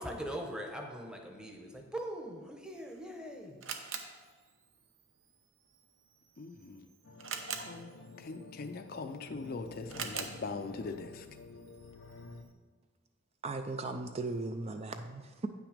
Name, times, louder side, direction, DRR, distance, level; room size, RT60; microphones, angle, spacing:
voice 1, 0.0-4.0, equal, 5° right, 0.9 m, -42 dB
Camera, 2.7-12.5, right 6 dB, 75° right, 0.8 m, -47 dB
voice 2, 6.4-6.9 7.6-7.9 8.2-11.3, left 3 dB, 45° left, 0.5 m, -41 dB
sound 1, 7.0-12.4, left 3 dB, 90° left, 0.6 m, -51 dB
voice 3, 13.4-15.5, right 3 dB, 30° right, 0.4 m, -37 dB
8.8 x 6.0 x 5.0 m
head